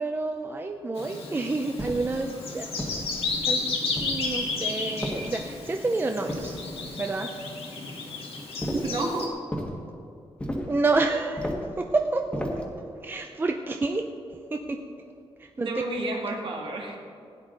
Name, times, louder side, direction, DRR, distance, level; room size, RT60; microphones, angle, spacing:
voice 1, 0.0-2.7 3.5-3.6 4.0-6.6 7.0-7.3 10.7-12.6 13.0-14.0 14.3-14.8 15.4-15.7, right 3 dB, 20° right, 4 dB, 0.5 m, -29 dB
Bird vocalization bird call bird song, 1.0-9.3, left 3 dB, 65° left, 1.9 m, -32 dB
sound 1, 1.8-2.2 2.8-3.4 4.0-4.5 5.0-5.7 6.3-7.0 8.6-9.0 9.5-9.8 10.4-10.8 11.4-11.8 12.3-12.7, equal, 10° left, 1.5 m, -34 dB
voice 2, 8.7-9.4 15.6-17.0, right 2 dB, 55° right, 0 dB, 2.0 m, -30 dB
16.5 x 9.7 x 3.9 m, 2.4 s
wide cardioid pair, 145°, 10 cm